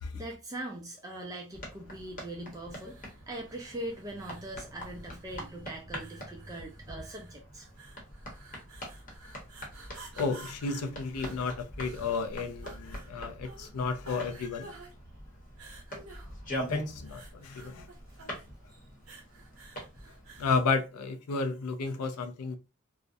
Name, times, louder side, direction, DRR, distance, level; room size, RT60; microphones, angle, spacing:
voice 1, 0.1-7.7 18.1-18.2 18.7-18.8, right 1 dB, 15° right, 0.3 m, -41 dB
sound 1, 1.5-20.7, equal, 35° left, 0.8 m, -44 dB
sound 2, 2.7-20.6, right 2 dB, 70° right, 0.6 m, -52 dB
voice 2, 9.9-14.7 16.7-17.9 20.4-22.6, left 4 dB, 90° left, 0.4 m, -32 dB
2.4 x 2.0 x 2.5 m
head